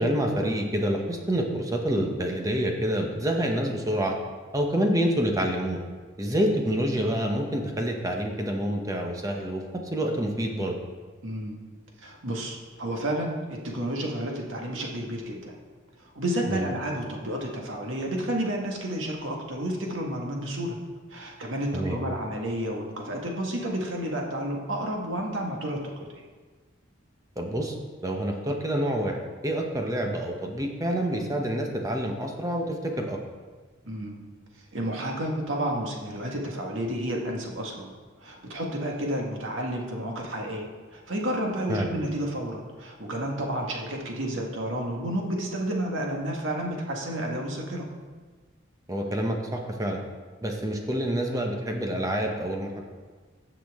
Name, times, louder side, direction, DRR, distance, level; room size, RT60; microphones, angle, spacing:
voice 1, 0.0-4.1 4.5-5.8 6.2-9.6 9.9-10.8 16.5-16.6 21.7-22.0 27.4-27.7 28.0-33.2 41.7-41.9 48.9-50.0 50.4-52.8, equal, 15° right, 2 dB, 0.9 m, -27 dB
voice 2, 11.2-11.6 12.0-15.5 16.0-20.8 21.1-26.2 33.8-34.2 34.7-37.9 38.2-47.9, right 1 dB, 80° right, 0 dB, 1.6 m, -31 dB
15.5 x 6.0 x 3.6 m, 1.4 s
head